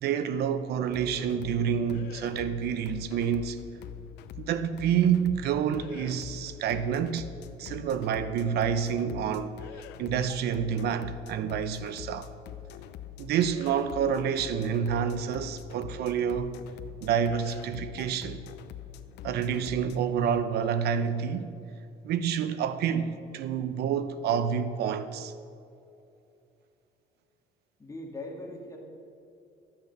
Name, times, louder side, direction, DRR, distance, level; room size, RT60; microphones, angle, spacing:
voice 1, 0.0-3.6 4.4-7.3 7.6-9.6 10.0-12.3 13.2-16.5 17.0-18.4 19.2-21.6 22.0-25.3, right 8 dB, 70° right, 0.9 m, -28 dB
sound 1, 0.8-20.0, left 11 dB, 85° left, 0.7 m, -44 dB
voice 2, 27.8-28.8, left 2 dB, 20° left, 2.1 m, -40 dB
13.5 x 8.9 x 6.7 m
cardioid pair, 110°, 17 cm